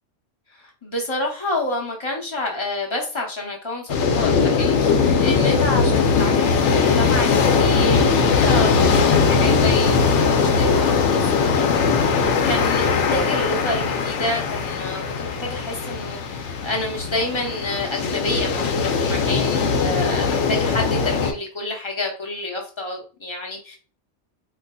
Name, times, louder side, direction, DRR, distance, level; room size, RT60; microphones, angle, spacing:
voice 1, 0.5-23.8, left 2 dB, 30° left, 0.8 m, -29 dB
sound 1, 3.9-21.3, left 5 dB, 85° left, 0.9 m, -20 dB
3.8 x 2.4 x 2.2 m
omnidirectional pair, 1.2 m